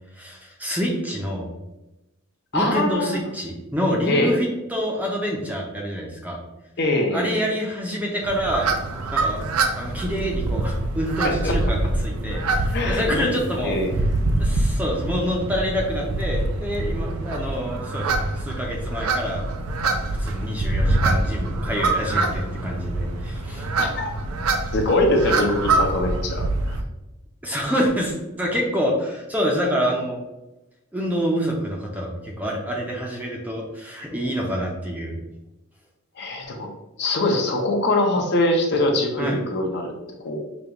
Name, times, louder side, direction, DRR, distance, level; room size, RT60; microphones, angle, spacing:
voice 1, 0.2-1.5 2.5-6.4 7.1-8.7 9.1-9.4 9.8-13.8 14.4-19.4 19.8-23.7 27.4-30.2 30.9-35.2 39.2-39.4, equal, 5° right, -1 dB, 0.5 m, -27 dB
voice 2, 2.5-3.2 4.1-4.4 6.8-7.5 9.2-9.3 11.2-11.6 12.7-13.9 23.8-24.1 24.7-26.8 36.2-36.7 37.0-39.9 40.2-40.4, left 2 dB, 50° left, 2 dB, 0.6 m, -23 dB
sound 1, 8.2-26.8, right 2 dB, 85° right, 0.5 m, -25 dB
5.0 x 2.3 x 2.9 m, 0.99 s
head